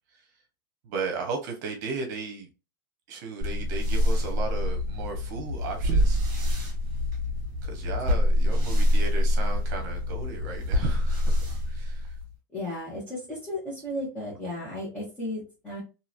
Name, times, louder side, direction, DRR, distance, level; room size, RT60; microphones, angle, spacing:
voice 1, 0.8-2.5 3.1-6.2 7.6-12.2, right 4 dB, 60° right, 0.8 m, -35 dB
sound 1, 3.4-12.3, left 1 dB, 40° right, 1.5 m, -25 dB
voice 2, 12.5-15.8, left 1 dB, 15° left, 1.2 m, -34 dB
2.9 x 2.8 x 2.5 m
supercardioid pair, 155°, 11 cm